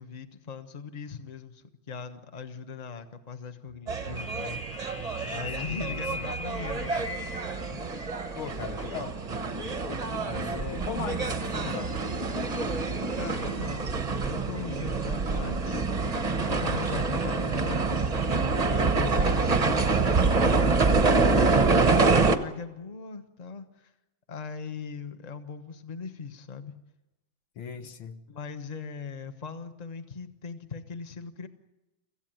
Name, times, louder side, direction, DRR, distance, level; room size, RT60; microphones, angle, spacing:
voice 1, 0.0-4.6 5.2-7.1 7.7-7.8 13.2-15.9 16.4-18.1 18.6-23.9 24.3-26.8 28.3-31.5, left 5 dB, 25° left, 1.0 m, -40 dB
sound 1, 3.7-19.3 20.1-20.2, right 7 dB, 55° right, 0.5 m, -43 dB
sound 2, 3.9-22.4, right 3 dB, 30° right, 0.8 m, -26 dB
sound 3, 4.2-7.6, left 1 dB, 5° left, 1.6 m, -39 dB
voice 2, 5.7-6.3 8.4-9.2 10.2-12.0 19.0-19.4 27.6-28.2, left 8 dB, 90° left, 2.1 m, -38 dB
26.0 x 15.5 x 9.1 m
omnidirectional pair, 2.2 m